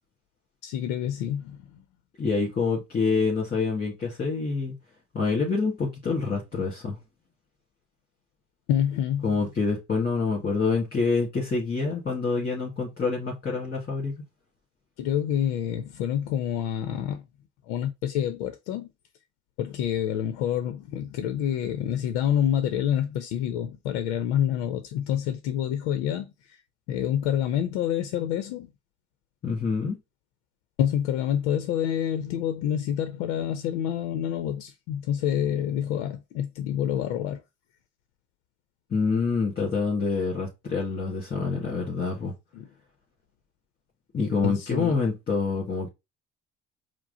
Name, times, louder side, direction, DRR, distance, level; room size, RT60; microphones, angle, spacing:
voice 1, 0.6-1.8 8.7-9.3 15.0-17.2 17.7-18.9 19.6-26.6 26.9-28.7 30.8-37.4 42.5-42.7 44.4-45.0, left 10 dB, 75° left, 0.6 m, -27 dB
voice 2, 2.2-4.7 5.1-7.0 9.2-14.1 29.4-30.0 38.9-42.3 44.1-45.9, left 4 dB, 30° left, 1.9 m, -26 dB
4.7 x 2.0 x 3.7 m
hypercardioid pair, 60°, 34 cm